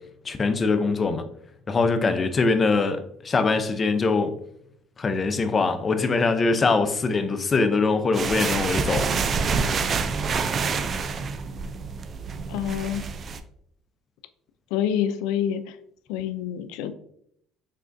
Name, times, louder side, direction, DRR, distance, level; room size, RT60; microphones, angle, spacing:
voice 1, 0.2-1.2 1.7-4.4 5.0-9.4, left 4 dB, 30° left, 0.6 m, -23 dB
sound 1, 8.1-13.4, right 5 dB, 40° right, 0.4 m, -27 dB
voice 2, 12.5-13.0 14.7-15.8 16.1-16.9, left 9 dB, 85° left, 0.3 m, -27 dB
5.6 x 3.6 x 2.6 m
cardioid pair, 105°, 0 cm